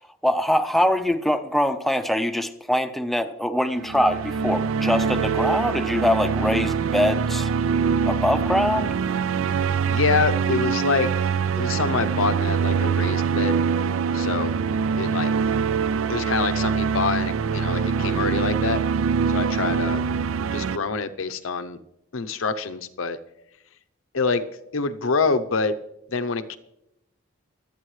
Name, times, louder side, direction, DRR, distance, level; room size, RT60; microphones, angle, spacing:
voice 1, 0.2-7.5 8.1-8.9, left 1 dB, ahead, 8 dB, 0.6 m, -23 dB
sound 1, 3.8-20.8, right 6 dB, 70° right, 0.4 m, -24 dB
voice 2, 9.9-11.1 11.6-13.6 14.1-14.5 15.0-15.3 16.1-18.8 19.3-20.0 20.5-21.8 22.1-23.2 24.1-24.4 24.7-25.7 26.1-26.6, left 4 dB, 70° left, 11 dB, 0.7 m, -25 dB
24.0 x 8.8 x 3.2 m, 0.86 s
head